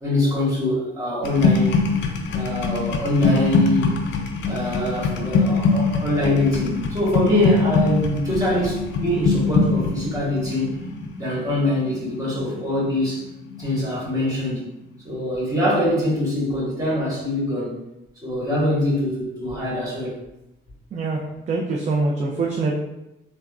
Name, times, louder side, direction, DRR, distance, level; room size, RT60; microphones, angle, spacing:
voice 1, 0.0-1.7 2.3-3.9 4.4-10.7 11.2-13.2 13.6-14.6 15.0-17.8 18.2-20.2, left 1 dB, 15° right, -7 dB, 1.5 m, -23 dB
sound 1, 1.2-13.1 13.4-13.8, left 4 dB, 70° left, 0.4 m, -23 dB
voice 2, 20.9-21.2 21.5-22.7, right 3 dB, 35° right, -1 dB, 0.4 m, -23 dB
3.4 x 2.1 x 2.3 m, 0.92 s
cardioid pair, 90°, 20 cm